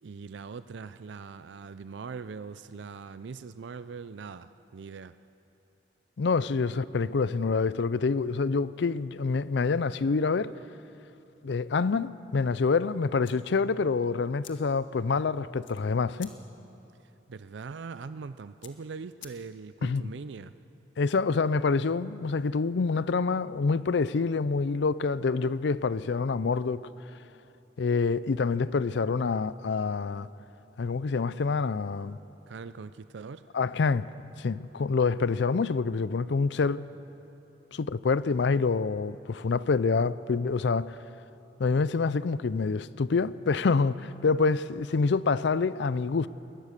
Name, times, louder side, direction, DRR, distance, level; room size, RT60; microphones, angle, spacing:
voice 1, 0.0-5.2 17.3-20.6 32.5-33.4, right 5 dB, 70° right, 0.4 m, -41 dB
voice 2, 6.2-10.5 11.4-16.3 19.8-20.0 21.0-26.8 27.8-30.3 30.8-32.2 33.5-34.1 34.4-36.8 37.7-41.0 41.6-46.3, left 4 dB, 65° left, 0.4 m, -26 dB
sound 1, 13.2-19.8, left 9 dB, 85° left, 1.5 m, -54 dB
21.0 x 18.5 x 6.7 m
head